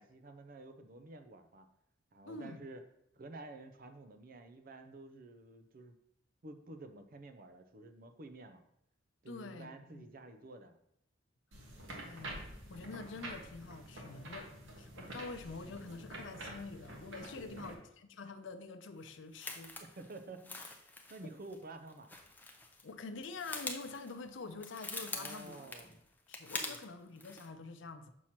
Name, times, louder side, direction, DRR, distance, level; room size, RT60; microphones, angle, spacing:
voice 1, 0.0-1.7 2.1-2.8 3.1-6.0 6.4-8.6 9.2-10.8 14.6-14.7 17.4-17.8 19.8-20.6 21.1-22.1 25.1-26.0 26.7-26.8, right 2 dB, 50° right, 8 dB, 0.6 m, -51 dB
voice 2, 2.2-2.6 9.3-10.0 11.6-19.7 22.8-25.7 26.3-28.1, left 3 dB, 70° left, 8 dB, 0.6 m, -47 dB
sound 1, 11.5-17.7, right 1 dB, 70° right, 1.2 m, -48 dB
sound 2, 19.1-22.9 23.2-26.9 27.2-27.5, left 2 dB, 10° left, 0.6 m, -45 dB
6.3 x 2.9 x 5.7 m, 0.76 s
head